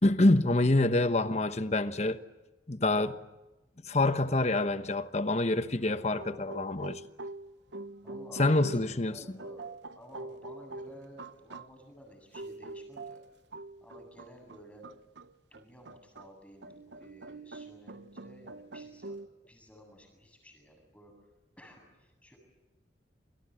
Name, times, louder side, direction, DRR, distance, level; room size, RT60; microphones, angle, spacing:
voice 1, 0.0-2.2 2.7-3.2 3.8-7.0 8.4-9.2, left 2 dB, 35° left, 1.2 m, -26 dB
sound 1, 5.2-5.5 5.9-11.7 12.3-16.3 16.6-19.3, right 2 dB, 75° right, 0.9 m, -45 dB
voice 2, 8.0-9.7 9.9-13.2 13.8-14.8 15.5-19.2 19.5-21.1 21.6-22.4, equal, 5° left, 7.9 m, -53 dB
28.5 x 26.5 x 7.8 m
head